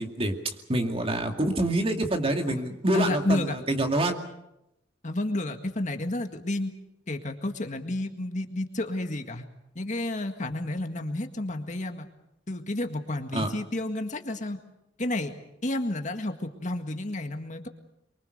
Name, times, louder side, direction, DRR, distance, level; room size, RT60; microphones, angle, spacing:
voice 1, 0.0-4.2 13.3-13.5, right 1 dB, 30° right, 4 dB, 2.4 m, -26 dB
voice 2, 2.9-3.6 5.0-6.7 7.1-9.4 9.8-12.1 12.5-14.6 15.0-15.3 15.6-17.7, left 1 dB, 40° left, 6 dB, 1.9 m, -31 dB
24.0 x 24.0 x 6.6 m, 0.86 s
head